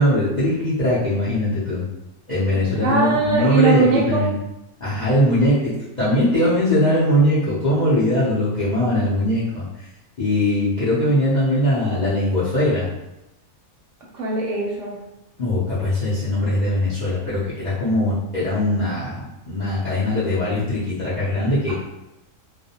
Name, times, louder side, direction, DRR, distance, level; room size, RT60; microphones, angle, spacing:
voice 1, 0.0-1.8 2.3-4.3 4.8-9.9 10.2-12.9 15.4-21.7, left 1 dB, 50° left, -10 dB, 0.5 m, -21 dB
voice 2, 2.8-4.2 14.1-15.0, right 4 dB, 65° right, -4 dB, 0.8 m, -20 dB
2.4 x 2.1 x 2.7 m, 0.94 s
omnidirectional pair, 1.5 m